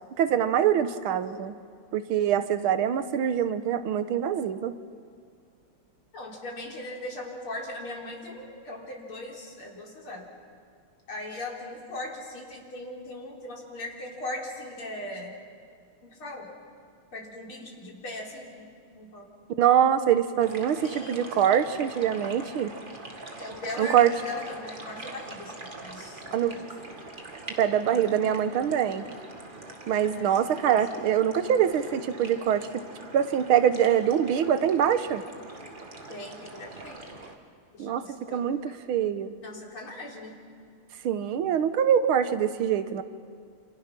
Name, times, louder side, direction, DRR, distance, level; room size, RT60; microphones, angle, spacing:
voice 1, 0.2-1.5 1.9-4.8 19.6-22.7 23.8-24.1 26.3-26.5 27.6-29.1 29.9-32.7 33.1-35.2 37.8-38.0 38.3-39.4 41.0-43.0, right 9 dB, 80° right, 11 dB, 1.8 m, -24 dB
voice 2, 6.1-10.3 11.1-15.4 16.0-16.5 17.1-18.7 18.9-19.2 20.7-21.5 23.4-26.6 30.1-30.3 30.7-31.0 36.1-37.0 37.7-38.7 39.4-40.4, left 1 dB, 80° left, -2 dB, 4.7 m, -39 dB
sound 1, 20.4-37.4, right 2 dB, 25° right, 1.9 m, -43 dB
28.0 x 28.0 x 6.0 m, 2.3 s
omnidirectional pair, 2.3 m